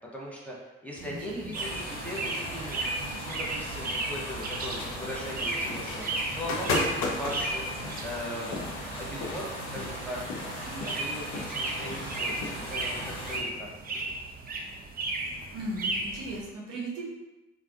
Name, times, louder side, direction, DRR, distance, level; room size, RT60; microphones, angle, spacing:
voice 1, 0.1-2.9 3.2-9.5 9.7-14.2, equal, 5° left, -5 dB, 0.8 m, -40 dB
sound 1, 1.0-16.4, right 2 dB, 25° right, 0.4 m, -36 dB
voice 2, 1.0-1.8 15.5-17.0, right 1 dB, 60° right, -3 dB, 0.7 m, -37 dB
sound 2, 1.5-13.4, equal, 80° left, 0.9 m, -38 dB
sound 3, 4.7-14.1, left 3 dB, 55° left, 0.5 m, -37 dB
3.3 x 2.3 x 2.3 m, 1.1 s
figure-of-eight pair, 40°, 34 cm